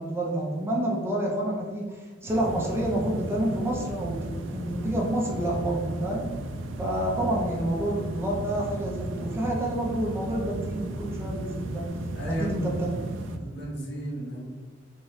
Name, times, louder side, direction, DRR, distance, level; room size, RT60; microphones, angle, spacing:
voice 1, 0.0-6.3 6.8-11.9 12.3-13.0, right 1 dB, 15° right, -3 dB, 0.7 m, -29 dB
sound 1, 2.3-13.4, right 1 dB, 80° right, 0.4 m, -35 dB
voice 2, 12.2-12.7 13.4-14.4, equal, 65° left, -3 dB, 1.1 m, -34 dB
3.7 x 2.9 x 3.2 m, 1.5 s
head